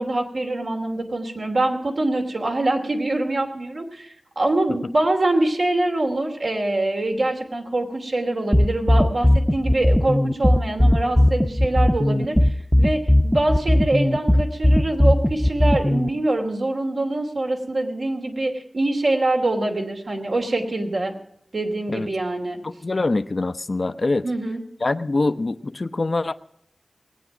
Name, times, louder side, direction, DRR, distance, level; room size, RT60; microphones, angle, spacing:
voice 1, 0.0-21.1 21.5-22.6 24.2-24.6, right 2 dB, 75° right, 1 dB, 3.0 m, -24 dB
sound 1, 8.5-16.1, left 1 dB, 5° left, 0.8 m, -17 dB
voice 2, 22.6-24.3 24.8-26.3, left 2 dB, 55° left, 11 dB, 0.7 m, -24 dB
19.5 x 9.2 x 6.1 m, 0.74 s
cardioid pair, 45°, 0 cm